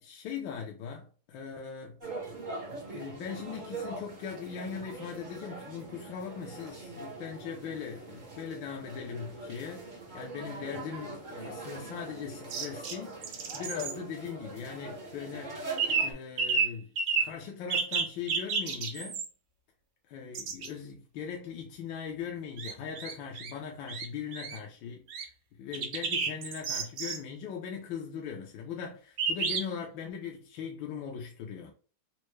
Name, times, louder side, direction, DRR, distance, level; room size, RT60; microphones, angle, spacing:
voice 1, 0.0-2.0 2.9-15.6 16.0-16.9 17.2-19.2 20.1-25.3 25.6-31.7, left 7 dB, 75° left, 1.2 m, -40 dB
sound 1, 2.0-16.1, right 3 dB, 45° right, 0.5 m, -42 dB
sound 2, 12.5-12.9 13.2-13.9 15.8-16.1 16.4-16.7 17.0-17.3 17.7-19.3 20.3-20.7 22.6-23.5 23.9-24.1 24.3-24.6 25.1-25.2 25.7-27.2 29.2-29.6, right 5 dB, 85° right, 1.6 m, -30 dB
4.3 x 2.1 x 3.1 m
omnidirectional pair, 2.4 m